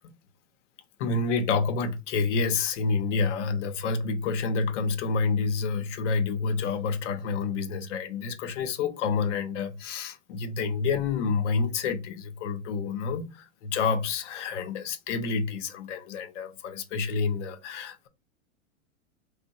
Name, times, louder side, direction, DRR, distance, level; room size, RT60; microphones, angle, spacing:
voice 1, 1.0-18.1, left 4 dB, 65° left, 0.6 m, -28 dB
2.8 x 2.0 x 2.6 m
hypercardioid pair, 110°, 39 cm